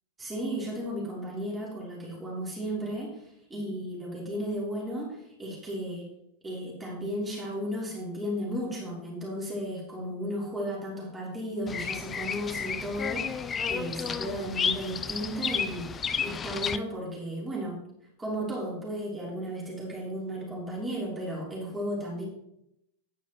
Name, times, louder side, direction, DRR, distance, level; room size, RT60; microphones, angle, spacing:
voice 1, 0.2-6.1 6.4-17.8 18.2-22.2, equal, 15° right, -4 dB, 3.4 m, -34 dB
Bird vocalization bird call bird song, 11.7-16.8, left 6 dB, 20° left, 0.4 m, -32 dB
9.6 x 9.4 x 3.0 m, 0.80 s
figure-of-eight pair, 90°, 0 cm